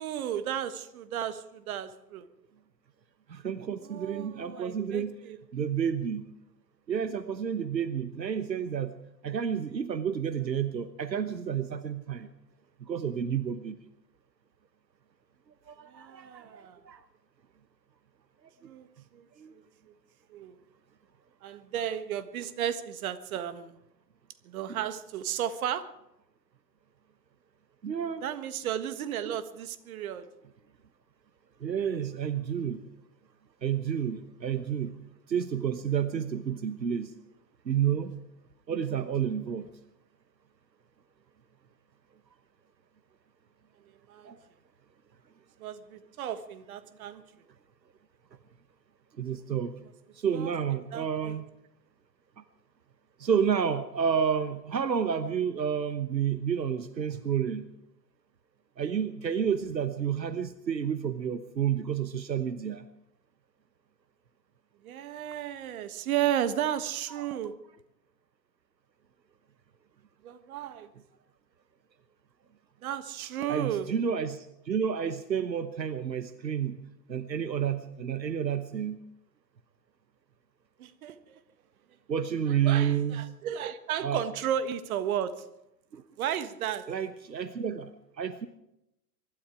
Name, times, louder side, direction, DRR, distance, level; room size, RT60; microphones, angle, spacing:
voice 1, 0.0-2.3 3.8-5.4 15.9-16.8 18.6-19.2 19.5-19.9 20.3-20.6 21.4-23.8 24.4-25.9 28.2-30.3 43.8-44.3 45.6-47.2 50.3-50.5 50.9-51.4 64.8-67.5 70.2-70.9 72.8-73.9 80.8-81.4 82.5-85.4 86.2-86.8, right 10 dB, 55° right, 11 dB, 1.6 m, -34 dB
voice 2, 3.3-5.2 5.5-6.3 6.9-9.0 9.2-12.3 12.8-13.8 15.7-17.0 19.4-19.5 27.8-28.2 29.2-29.4 31.6-32.8 33.6-35.0 35.3-37.1 37.6-38.1 38.7-39.7 44.2-44.4 49.2-49.7 50.1-51.4 53.2-57.7 58.8-62.9 67.1-67.3 73.5-76.8 77.1-79.0 82.1-83.2 84.0-84.2 85.9-86.0 86.9-88.5, right 8 dB, 85° right, 12 dB, 1.1 m, -30 dB
23.5 x 12.5 x 4.8 m, 0.84 s
figure-of-eight pair, 100°, 49 cm